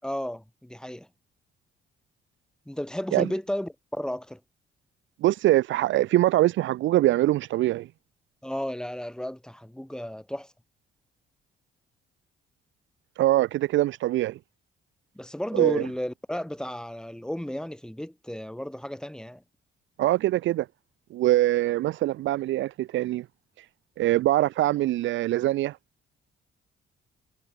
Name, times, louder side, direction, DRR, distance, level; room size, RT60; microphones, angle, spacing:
voice 1, 0.0-1.1 2.6-4.4 8.4-10.5 15.1-19.4, equal, 5° left, 6.8 m, -33 dB
voice 2, 5.2-7.9 13.2-14.4 15.5-15.8 20.0-20.7 21.1-23.2 24.0-25.8, right 15 dB, 70° right, 0.5 m, -23 dB
cardioid pair, 90°, 20 cm